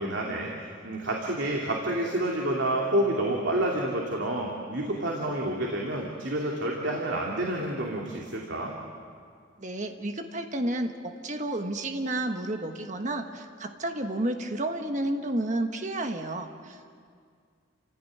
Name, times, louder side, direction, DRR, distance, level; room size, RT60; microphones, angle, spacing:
voice 1, 0.0-8.7, right 1 dB, 75° right, -1 dB, 2.8 m, -29 dB
voice 2, 9.6-17.0, right 1 dB, 40° right, 5 dB, 1.4 m, -31 dB
29.5 x 16.5 x 9.5 m, 2.2 s
head